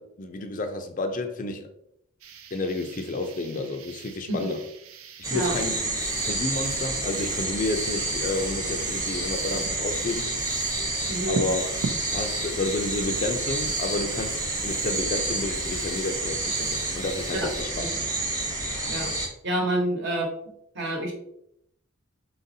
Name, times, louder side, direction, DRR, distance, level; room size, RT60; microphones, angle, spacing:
voice 1, 0.0-1.7 2.5-4.6 5.3-5.9 6.3-10.3 11.3-11.8 12.1-17.8, left 2 dB, 40° left, 0.4 m, -30 dB
sound 1, 2.2-17.6, right 4 dB, 80° right, 0.5 m, -42 dB
sound 2, 5.2-19.3, right 2 dB, 15° right, 0.9 m, -29 dB
voice 2, 11.1-11.4 17.8-17.9 18.9-19.1 19.4-20.3 20.7-21.1, right 1 dB, 55° right, 1.1 m, -27 dB
4.2 x 3.9 x 2.7 m
head